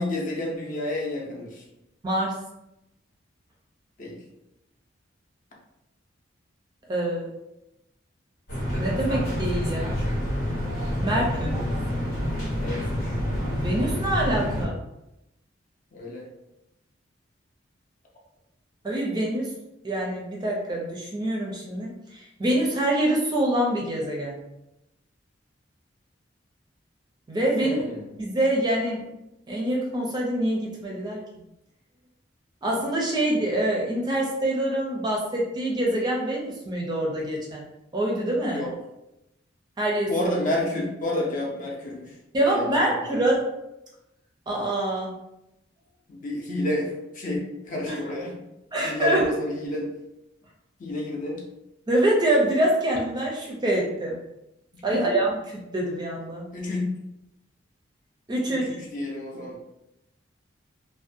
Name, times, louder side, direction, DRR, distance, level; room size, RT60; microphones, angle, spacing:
voice 1, 0.0-1.6 4.0-4.2 11.0-11.7 12.6-13.2 15.9-16.3 27.6-28.1 38.5-38.7 40.1-43.2 46.1-48.3 48.8-49.9 50.8-51.4 54.7-55.2 56.5-57.0 58.5-59.7, left 1 dB, 45° left, -2 dB, 0.6 m, -30 dB
voice 2, 2.0-2.4 6.9-7.3 8.8-10.0 11.0-11.6 13.6-14.8 18.8-19.5 19.8-24.3 27.3-27.9 28.2-29.1 29.5-31.2 32.6-37.7 37.9-38.6 39.8-40.1 42.3-43.4 44.5-45.1 47.9-48.0 48.7-49.3 51.9-54.2 54.8-55.3 55.7-56.5 58.3-58.6, right 1 dB, 20° right, -1 dB, 0.4 m, -25 dB
sound 1, 8.5-14.7, equal, 85° left, 1.0 m, -28 dB
2.5 x 2.1 x 2.6 m, 0.89 s
head